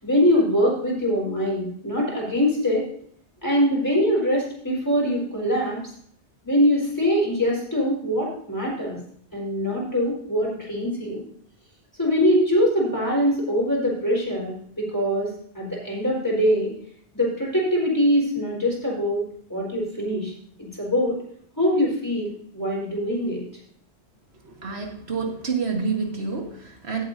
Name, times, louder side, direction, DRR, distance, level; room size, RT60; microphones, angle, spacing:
voice 1, 0.0-2.9 3.4-5.8 6.4-9.0 9.3-11.2 12.0-16.7 17.1-19.2 19.5-20.3 20.6-21.2 21.6-23.4, equal, 15° left, -4 dB, 4.1 m, -23 dB
voice 2, 24.4-27.0, right 5 dB, 65° right, 2 dB, 1.9 m, -28 dB
16.5 x 7.9 x 2.7 m, 0.63 s
omnidirectional pair, 1.2 m